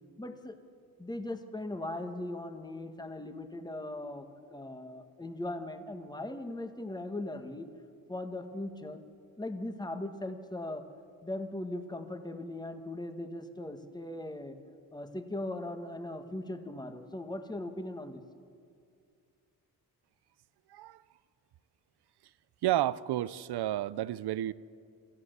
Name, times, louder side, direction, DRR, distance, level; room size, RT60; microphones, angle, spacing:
voice 1, 0.2-0.6 1.0-7.7 8.1-9.0 9.4-10.8 11.2-14.6 14.9-18.2, left 1 dB, 10° left, 1.6 m, -39 dB
voice 2, 20.7-21.0 22.6-24.5, right 14 dB, 80° right, 0.7 m, -31 dB
27.5 x 14.0 x 8.1 m
cardioid pair, 100°, 39 cm